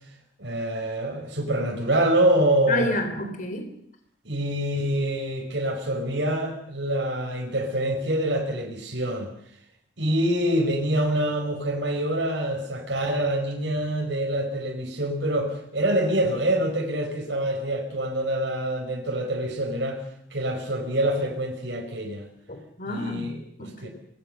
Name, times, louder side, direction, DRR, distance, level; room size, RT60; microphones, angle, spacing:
voice 1, 0.4-3.0 4.2-9.3 10.0-20.0 20.3-22.3 22.8-23.9, right 1 dB, 70° right, 1 dB, 5.0 m, -26 dB
voice 2, 2.7-3.7 22.5-23.9, left 1 dB, 45° left, 6 dB, 3.9 m, -30 dB
25.0 x 22.0 x 6.7 m, 0.68 s
head